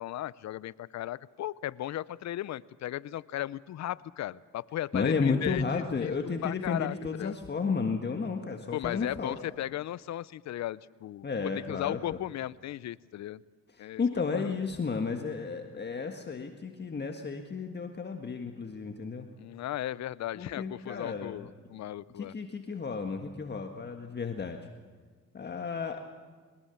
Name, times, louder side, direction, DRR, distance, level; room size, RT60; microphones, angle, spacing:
voice 1, 0.0-6.1 6.4-7.4 8.7-13.4 13.8-14.2 19.4-22.3, left 13 dB, 65° left, 20 dB, 0.6 m, -36 dB
voice 2, 4.9-9.4 11.2-12.0 13.8-19.3 20.3-21.5 22.2-24.6 25.3-26.0, left 5 dB, 35° left, 4 dB, 1.7 m, -33 dB
22.5 x 20.5 x 7.1 m, 1.5 s
cardioid pair, 90°, 30 cm